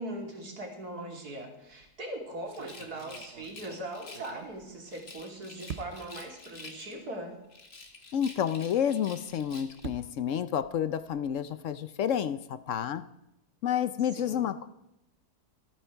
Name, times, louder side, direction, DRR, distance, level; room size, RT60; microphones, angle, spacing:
voice 1, 0.0-7.4 14.1-14.5, right 1 dB, 70° right, 1 dB, 3.3 m, -40 dB
sound 1, 1.6-1.9 2.5-5.2 5.7-6.2 7.0-7.1 7.4-7.5 9.1-11.4, right 7 dB, 55° right, 0.9 m, -46 dB
Rattle, 2.5-4.4 4.9-7.1 7.5-9.9, left 3 dB, 40° left, 1.9 m, -49 dB
voice 2, 8.1-13.0 13.6-14.7, left 9 dB, 65° left, 12 dB, 0.9 m, -30 dB
25.0 x 9.1 x 4.6 m, 0.88 s
omnidirectional pair, 1.7 m